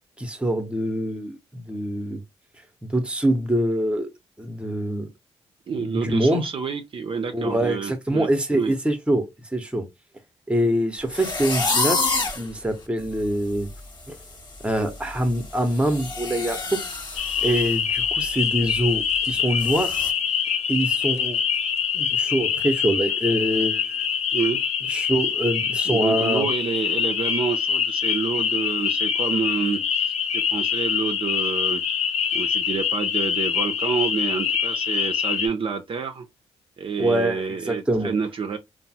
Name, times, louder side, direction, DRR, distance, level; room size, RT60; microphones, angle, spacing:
voice 1, 0.2-2.2 2.8-4.1 4.4-5.1 5.7-6.4 7.3-9.9 10.5-13.7 14.1-14.2 14.6-16.8 17.4-20.0 20.7-21.4 21.9-24.1 24.9-26.5 37.0-38.1, right 1 dB, 10° right, 0.7 m, -24 dB
voice 2, 5.7-8.7 24.3-24.6 25.9-31.8 32.3-36.3 36.8-38.6, right 5 dB, 50° right, 0.4 m, -28 dB
sound 1, 11.1-12.5 13.0-13.1 13.5-13.8 14.0-17.7 18.1-18.2 18.7-18.8 19.6-20.1, left 3 dB, 40° left, 0.8 m, -28 dB
sound 2, 17.2-35.5, left 7 dB, 70° left, 0.6 m, -25 dB
2.9 x 2.0 x 2.7 m
cardioid pair, 70°, 12 cm